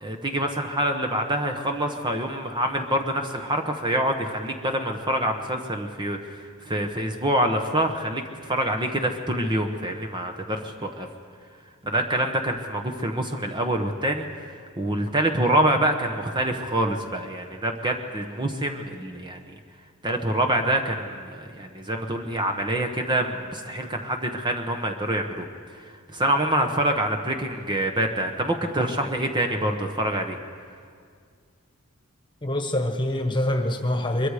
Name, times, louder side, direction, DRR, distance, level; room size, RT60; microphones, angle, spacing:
voice 1, 0.0-6.4 6.7-11.1 11.8-14.3 14.8-19.5 20.0-25.5 26.1-30.4, right 1 dB, 20° right, 4 dB, 1.0 m, -26 dB
voice 2, 32.4-34.3, left 1 dB, 20° left, 5 dB, 1.5 m, -25 dB
23.0 x 22.5 x 5.0 m, 2.1 s
head